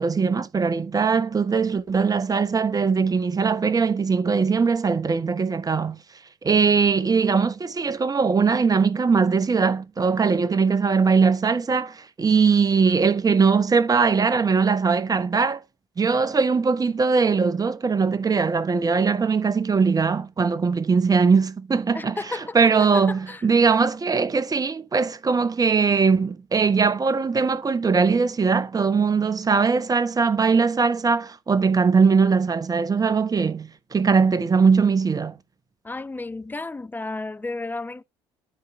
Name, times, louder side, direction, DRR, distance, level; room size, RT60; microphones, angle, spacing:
voice 1, 0.0-6.0 6.4-15.6 16.0-35.4, right 5 dB, 25° right, 1.1 m, -21 dB
voice 2, 21.9-22.6 23.3-23.4 35.8-38.0, left 3 dB, 15° left, 0.7 m, -32 dB
12.0 x 4.7 x 4.5 m
hypercardioid pair, 55°, 14 cm